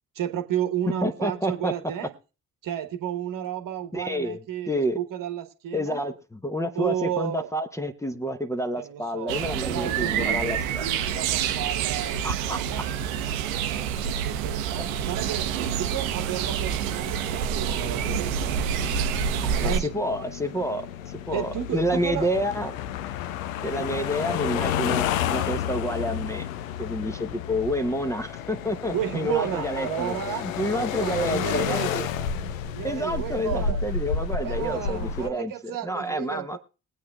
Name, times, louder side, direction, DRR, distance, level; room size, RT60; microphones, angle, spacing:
voice 1, 0.1-2.1 2.6-6.1 6.7-7.5 8.8-12.9 14.1-15.5 15.8-18.8 19.6-19.9 21.3-22.3 28.9-30.4 30.8-33.8 34.4-36.6, right 10 dB, 50° right, 8 dB, 1.2 m, -32 dB
voice 2, 1.0-1.7 3.9-4.4 4.7-5.0 5.7-10.8 12.2-12.6 19.4-20.9 21.3-22.7 23.6-26.5 26.8-30.1 30.4-32.0 32.8-36.6, equal, 5° left, 9 dB, 0.9 m, -29 dB
sound 1, 9.3-19.8, right 8 dB, 70° right, 0.8 m, -27 dB
sound 2, 17.8-35.3, left 8 dB, 75° left, 0.6 m, -31 dB
22.0 x 8.5 x 2.3 m, 0.34 s
figure-of-eight pair, 40°, 41 cm